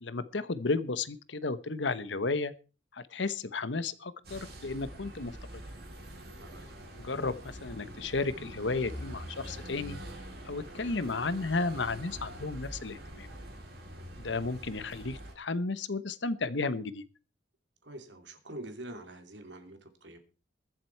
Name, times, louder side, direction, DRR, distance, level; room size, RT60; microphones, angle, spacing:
voice 1, 0.0-2.5 2.9-5.3 7.0-10.0 10.4-13.3 14.2-17.0, left 3 dB, 80° left, 15 dB, 1.0 m, -33 dB
sound 1, 4.2-15.3, right 1 dB, 60° right, 6.8 m, -45 dB
voice 2, 6.4-6.8 17.8-20.2, right 1 dB, 75° right, 6 dB, 2.9 m, -45 dB
22.0 x 7.6 x 4.6 m, 0.36 s
head